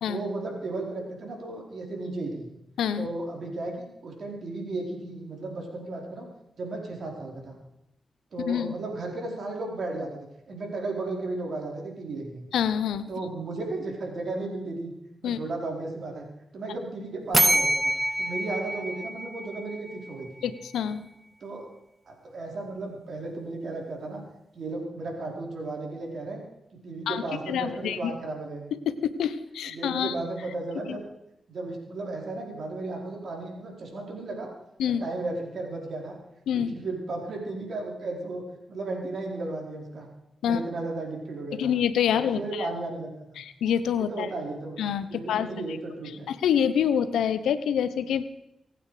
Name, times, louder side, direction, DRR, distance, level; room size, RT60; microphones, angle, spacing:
voice 1, 0.1-2.5 3.0-6.3 6.6-7.6 8.3-10.1 10.5-12.4 13.1-14.9 15.2-16.2 16.5-17.9 18.2-20.5 21.4-21.7 22.1-24.2 24.5-26.4 26.8-28.7 29.7-31.0 31.5-34.5 34.9-36.2 36.5-38.4 38.7-40.1 40.4-41.7 42.1-43.4 44.0-46.3, right 2 dB, 70° right, 0 dB, 4.5 m, -34 dB
voice 2, 12.5-13.1 15.2-15.4 20.4-21.0 27.1-28.0 28.9-30.1 30.9-31.0 34.8-35.0 36.5-36.7 40.4-40.6 41.6-42.7 43.4-44.3 44.8-45.5 46.3-48.2, left 8 dB, 90° left, 13 dB, 0.8 m, -26 dB
sound 1, 17.3-20.1, right 1 dB, 20° right, 0.9 m, -26 dB
24.5 x 8.9 x 5.0 m, 0.84 s
supercardioid pair, 45°, 0 cm